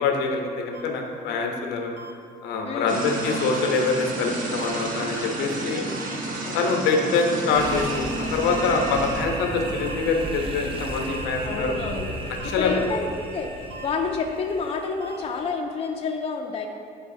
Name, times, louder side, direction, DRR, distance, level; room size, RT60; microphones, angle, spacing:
voice 1, 0.0-2.0 2.4-5.8 6.5-11.7 12.4-12.8, left 4 dB, 90° left, 2 dB, 0.8 m, -25 dB
sound 1, 0.7-0.8 2.0-2.1 3.3-3.4 4.6-4.7 5.9-6.0 7.2-7.3 8.5-8.6 9.8-10.0 11.1-11.2 12.4-12.5 13.7-13.9 15.0-15.2, right 4 dB, 80° right, 0.8 m, -41 dB
voice 2, 2.6-3.1 5.8-5.9 6.4-6.6 11.4-13.5 13.8-16.7, left 5 dB, 35° left, 1 dB, 0.5 m, -29 dB
sound 2, 2.9-9.2, right 2 dB, 55° right, 0.9 m, -31 dB
sound 3, 7.5-15.4, right 2 dB, 30° right, 0.6 m, -34 dB
10.5 x 3.9 x 2.7 m, 2.5 s
cardioid pair, 110°, 17 cm